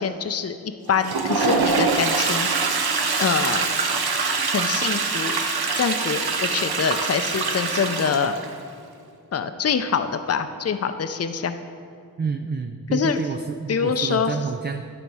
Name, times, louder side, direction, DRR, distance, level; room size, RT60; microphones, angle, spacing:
voice 1, 0.0-2.7 3.2-3.8 4.4-5.5 5.8-8.3 9.3-11.6 12.9-13.2 13.7-14.4, left 6 dB, 40° left, 10 dB, 0.5 m, -25 dB
Toilet flush, 0.9-8.5, right 4 dB, 80° right, 0.8 m, -24 dB
voice 2, 12.2-14.8, right 5 dB, 30° right, 6 dB, 0.4 m, -29 dB
11.0 x 5.2 x 4.7 m, 2.4 s
wide cardioid pair, 55°, 37 cm